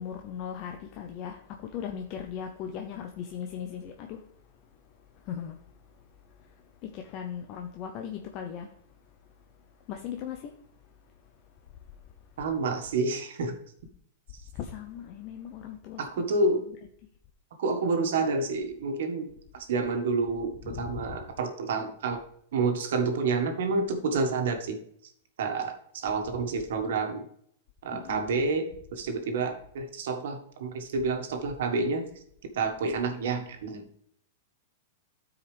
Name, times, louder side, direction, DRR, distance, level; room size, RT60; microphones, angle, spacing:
voice 1, 0.0-4.3 5.1-8.8 9.8-10.6 14.5-16.0 20.6-21.0 27.9-28.2, left 8 dB, 40° left, 0.7 m, -39 dB
voice 2, 12.4-13.6 16.0-16.7 17.6-19.3 19.5-22.2 22.5-24.8 25.4-27.3 27.8-32.0 32.5-33.8, right 3 dB, 75° right, 1.5 m, -29 dB
12.5 x 4.8 x 3.3 m
hypercardioid pair, 140°, 0 cm